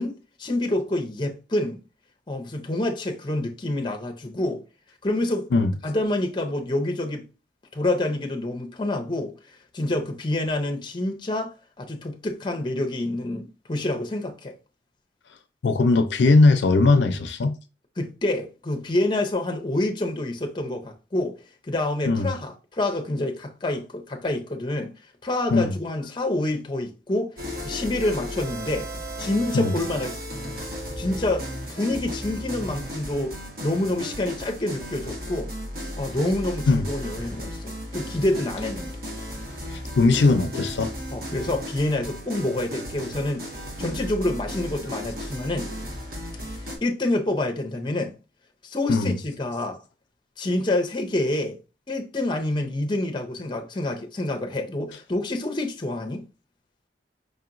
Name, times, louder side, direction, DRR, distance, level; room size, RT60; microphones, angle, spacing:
voice 1, 0.0-1.8 2.3-4.6 5.0-5.5 5.8-7.3 7.7-9.3 9.7-14.5 18.0-21.4 21.7-24.9 25.2-27.3 27.6-28.9 29.2-30.1 31.0-35.5 36.0-38.9 41.1-43.5 43.8-45.7 46.5-48.1 48.6-49.8 50.4-51.6 51.9-56.3, left 1 dB, 25° left, 0.6 m, -27 dB
voice 2, 15.6-17.6 22.1-22.3 25.5-25.8 29.5-29.7 36.7-36.8 39.7-40.9 48.9-49.2, left 3 dB, 80° left, 0.4 m, -19 dB
sound 1, 27.4-46.8, equal, 50° right, 1.1 m, -35 dB
5.1 x 2.8 x 2.5 m
head